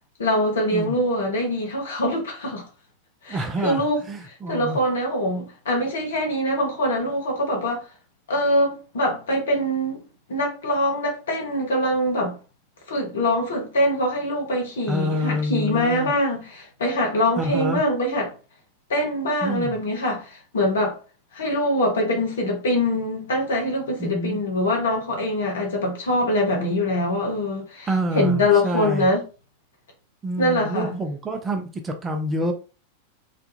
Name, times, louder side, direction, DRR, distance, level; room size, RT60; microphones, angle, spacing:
voice 1, 0.2-2.6 3.2-4.0 4.5-7.8 8.3-10.0 10.3-12.4 12.9-18.3 18.9-21.0 21.3-27.9 28.1-29.2 30.4-31.0, left 1 dB, 65° left, 1.0 m, -23 dB
voice 2, 3.3-4.8 14.9-16.1 17.4-17.8 19.4-19.8 24.0-24.4 27.8-29.1 30.2-32.5, equal, 20° right, 0.5 m, -27 dB
2.3 x 2.3 x 3.0 m
figure-of-eight pair, 90°, 0 cm